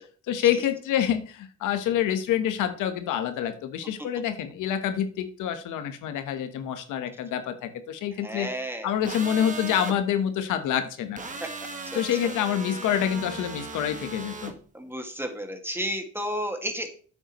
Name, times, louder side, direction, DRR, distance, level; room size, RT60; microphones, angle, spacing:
voice 1, 0.3-8.5 8.8-11.2 11.9-14.5, left 10 dB, 90° left, 9 dB, 1.2 m, -27 dB
voice 2, 8.2-8.9 11.4-11.5 11.8-12.3 14.7-16.9, equal, 10° right, 5 dB, 2.0 m, -32 dB
sound 1, 9.0-10.0 11.2-14.5, right 3 dB, 25° right, 1.8 m, -37 dB
8.9 x 7.8 x 3.1 m, 0.42 s
cardioid pair, 90°, 30 cm